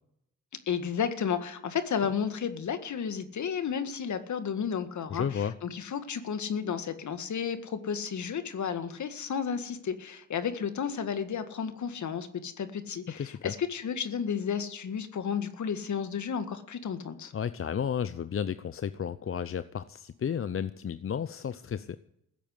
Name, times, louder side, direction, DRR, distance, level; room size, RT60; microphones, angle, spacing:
voice 1, 0.7-17.3, left 7 dB, 60° left, 10 dB, 1.8 m, -32 dB
voice 2, 5.1-5.6 13.1-13.5 17.3-22.0, left 8 dB, 40° left, 13 dB, 0.7 m, -33 dB
15.5 x 8.6 x 9.5 m, 0.75 s
supercardioid pair, 50°, 33 cm